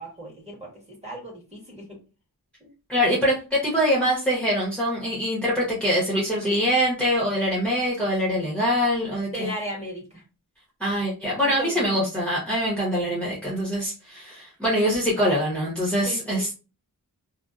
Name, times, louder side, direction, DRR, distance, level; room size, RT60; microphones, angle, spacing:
voice 1, 0.0-2.0 2.6-2.7 9.3-10.2 11.6-12.0 16.0-16.5, equal, 15° right, -3 dB, 1.4 m, -36 dB
voice 2, 2.9-9.5 10.8-16.5, equal, 5° left, -6 dB, 0.9 m, -24 dB
2.6 x 2.1 x 2.3 m, 0.31 s
wide cardioid pair, 85°, 39 cm